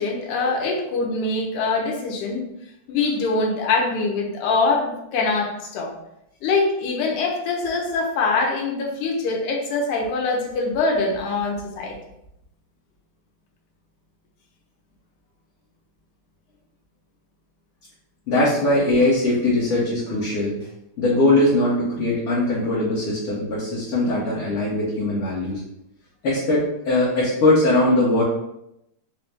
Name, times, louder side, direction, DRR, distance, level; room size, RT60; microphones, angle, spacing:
voice 1, 0.0-2.5 2.9-5.9 6.4-11.9, left 3 dB, 90° left, 0 dB, 2.2 m, -23 dB
voice 2, 18.3-20.6 21.0-25.6 26.2-28.2, left 2 dB, 70° left, -7 dB, 1.4 m, -20 dB
5.2 x 2.0 x 3.3 m, 0.83 s
omnidirectional pair, 3.5 m